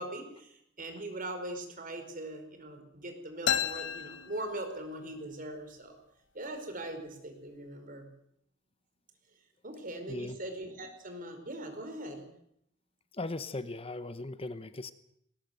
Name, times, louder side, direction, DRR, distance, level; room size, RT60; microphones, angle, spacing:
voice 1, 0.0-6.0 6.3-8.1 9.6-12.3, right 1 dB, 45° right, 6 dB, 4.9 m, -41 dB
sound 1, 3.5-5.2, left 8 dB, 80° left, 1.3 m, -33 dB
voice 2, 10.1-10.4 13.1-14.9, left 2 dB, 30° left, 12 dB, 0.9 m, -38 dB
20.0 x 19.0 x 7.9 m, 0.73 s
head